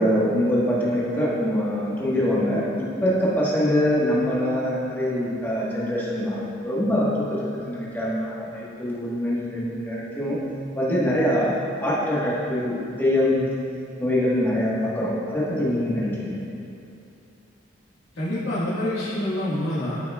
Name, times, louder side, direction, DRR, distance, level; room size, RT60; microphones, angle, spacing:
voice 1, 0.0-10.4 10.7-13.5 14.0-16.4, equal, 10° left, -8 dB, 1.4 m, -24 dB
voice 2, 18.1-20.0, left 1 dB, 90° left, -11 dB, 1.8 m, -27 dB
13.0 x 6.1 x 2.4 m, 2.7 s
head